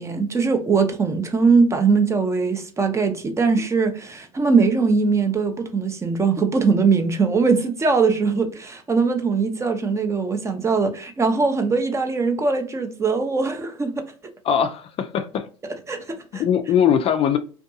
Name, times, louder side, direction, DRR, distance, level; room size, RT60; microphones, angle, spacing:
voice 1, 0.0-14.0 15.6-16.4, right 4 dB, 20° right, 0.5 m, -21 dB
voice 2, 14.5-15.5 16.4-17.4, left 8 dB, 40° left, 0.4 m, -20 dB
2.5 x 2.3 x 2.6 m
supercardioid pair, 95°, 16 cm